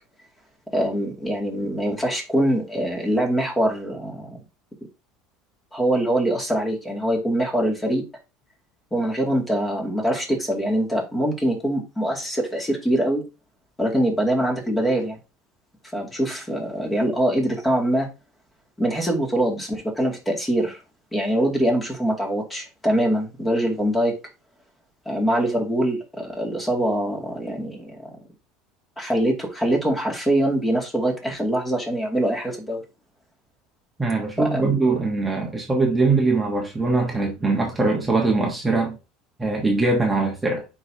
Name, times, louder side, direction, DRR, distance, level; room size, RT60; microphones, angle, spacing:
voice 1, 0.7-4.4 5.7-8.1 8.9-13.2 13.8-15.2 15.9-18.1 18.8-20.8 21.1-24.2 25.1-28.1 29.0-32.8 34.4-34.7, right 1 dB, 10° left, 2.5 m, -23 dB
voice 2, 34.0-39.0 39.4-40.6, right 3 dB, 10° right, 1.3 m, -22 dB
9.7 x 4.9 x 2.9 m
cardioid pair, 135°, 0 cm